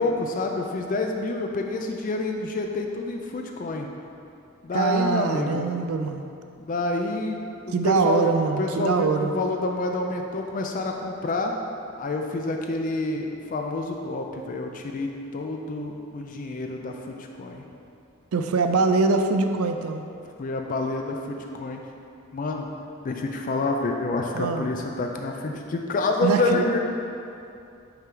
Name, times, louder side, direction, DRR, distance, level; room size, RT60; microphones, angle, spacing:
voice 1, 0.0-3.9 4.6-5.7 6.6-8.3 8.6-11.5 12.0-17.7 20.4-21.8 22.3-22.7 23.0-26.8, left 2 dB, 40° left, 2 dB, 0.4 m, -28 dB
voice 2, 4.7-6.3 7.7-9.3 18.3-20.0 24.3-24.7 26.2-26.7, right 4 dB, 85° right, 7 dB, 0.4 m, -23 dB
5.6 x 3.8 x 4.5 m, 2.6 s
head